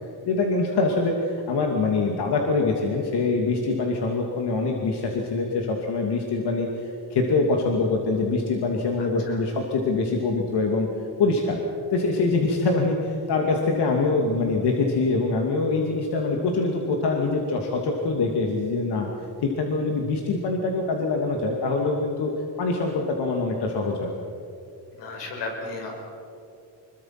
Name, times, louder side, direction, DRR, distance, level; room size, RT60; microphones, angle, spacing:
voice 1, 0.3-10.9 11.2-11.6 11.9-19.1 19.4-22.3 22.6-24.1, left 3 dB, 70° left, 1 dB, 2.6 m, -24 dB
voice 2, 9.0-9.4 25.0-25.9, left 3 dB, 90° left, 1 dB, 5.6 m, -34 dB
26.0 x 22.0 x 6.0 m, 2.6 s
cardioid pair, 130°, 41 cm